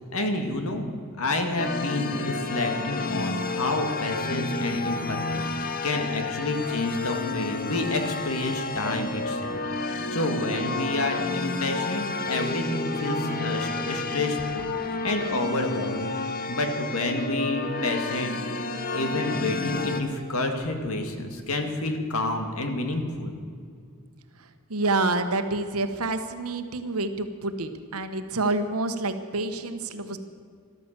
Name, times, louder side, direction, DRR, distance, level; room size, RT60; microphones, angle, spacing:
voice 1, 0.1-0.9 1.2-18.6 18.9-23.3, left 2 dB, 70° left, 5 dB, 1.8 m, -29 dB
ambient type melody, 1.6-20.0, left 3 dB, 40° left, 0.9 m, -30 dB
voice 2, 24.7-30.2, right 2 dB, 80° right, 9 dB, 1.1 m, -28 dB
13.0 x 13.0 x 7.3 m, 2.2 s
head